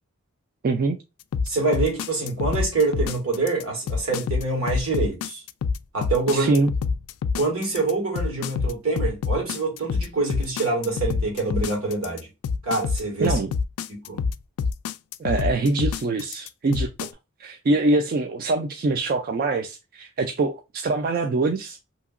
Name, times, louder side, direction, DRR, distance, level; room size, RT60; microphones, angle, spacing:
voice 1, 0.6-1.0 6.3-6.7 13.2-13.5 15.2-17.1 17.4-21.8, right 3 dB, 40° right, 0.3 m, -24 dB
sound 1, 1.3-17.1, left 5 dB, 85° left, 0.3 m, -26 dB
voice 2, 1.5-5.4 5.9-6.6 7.4-12.3 12.6-13.4 13.9-14.3, right 3 dB, 75° right, 1.6 m, -25 dB
2.8 x 2.8 x 2.4 m
head